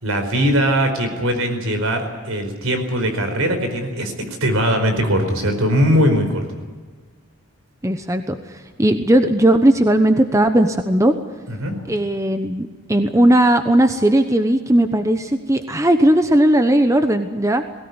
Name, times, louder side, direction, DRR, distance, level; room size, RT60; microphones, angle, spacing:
voice 1, 0.0-4.1 4.4-6.5 11.5-11.9, equal, 80° right, 7 dB, 4.8 m, -20 dB
voice 2, 7.8-8.4 8.8-11.2 11.9-17.6, right 1 dB, 15° right, 8 dB, 1.0 m, -17 dB
20.0 x 18.0 x 9.7 m, 1.5 s
head